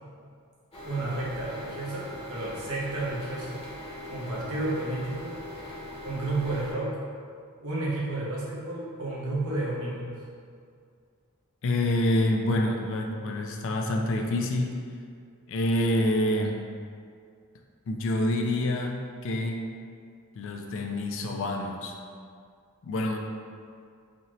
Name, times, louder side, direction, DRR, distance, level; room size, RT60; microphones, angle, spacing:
sound 1, 0.7-6.7, left 1 dB, 25° left, 0.8 m, -41 dB
voice 1, 0.8-2.0 2.3-3.6 4.1-5.3 6.0-7.0 7.6-10.1, right 2 dB, 85° right, -6 dB, 1.0 m, -31 dB
voice 2, 11.6-14.8 15.5-16.6 17.9-19.7 20.4-22.0 22.8-23.2, left 1 dB, 60° left, 2 dB, 0.4 m, -27 dB
4.2 x 2.8 x 3.0 m, 2.3 s
head